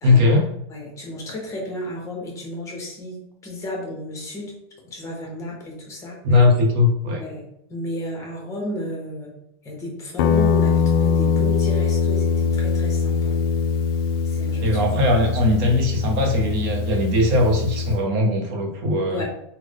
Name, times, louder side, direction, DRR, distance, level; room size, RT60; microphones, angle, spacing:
voice 1, 0.0-0.5 6.2-7.2 14.6-19.2, left 2 dB, 50° right, 1 dB, 0.8 m, -19 dB
voice 2, 0.7-4.5 4.8-6.2 7.2-7.4 7.7-9.4 9.6-13.5 14.3-14.7 19.1-19.2, left 1 dB, 20° left, -1 dB, 1.0 m, -33 dB
Guitar, 10.2-18.0, left 5 dB, 55° left, 0.4 m, -22 dB
3.6 x 2.2 x 3.4 m, 0.77 s
supercardioid pair, 145°, 14 cm